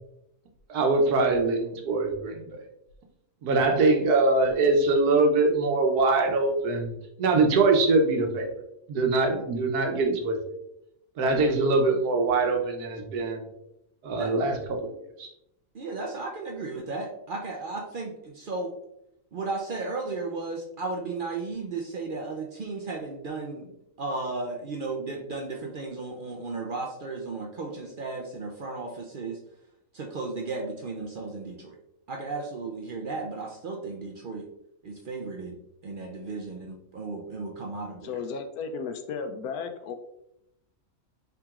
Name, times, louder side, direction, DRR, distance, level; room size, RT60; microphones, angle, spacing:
voice 1, 0.7-2.6 3.4-8.5 8.9-10.4 11.2-13.4 14.0-14.9 15.2-15.3, right 3 dB, 85° right, 3 dB, 1.3 m, -23 dB
voice 2, 15.7-18.7 19.3-23.7 24.0-29.4 29.9-31.8 32.1-34.5 34.8-35.6 35.8-38.1, right 3 dB, 70° right, 1 dB, 0.5 m, -34 dB
voice 3, 38.0-39.9, left 5 dB, 80° left, 6 dB, 1.1 m, -34 dB
5.8 x 3.7 x 2.4 m, 0.81 s
omnidirectional pair, 1.6 m